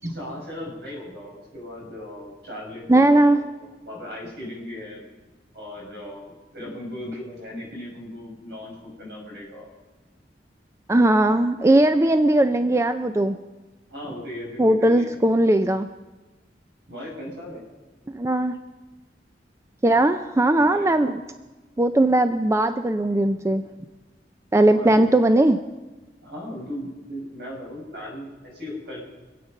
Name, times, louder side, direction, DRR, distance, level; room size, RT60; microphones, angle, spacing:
voice 1, 0.0-5.0 5.5-9.7 13.9-15.2 16.9-17.6 20.6-20.9 24.6-25.0 26.2-29.0, left 1 dB, 70° right, -2 dB, 6.2 m, -37 dB
voice 2, 2.9-3.4 10.9-13.4 14.6-15.9 18.1-18.6 19.8-21.2 21.8-23.6 24.5-25.6, right 1 dB, 15° right, 9 dB, 0.4 m, -19 dB
25.5 x 8.6 x 5.4 m, 1.2 s
head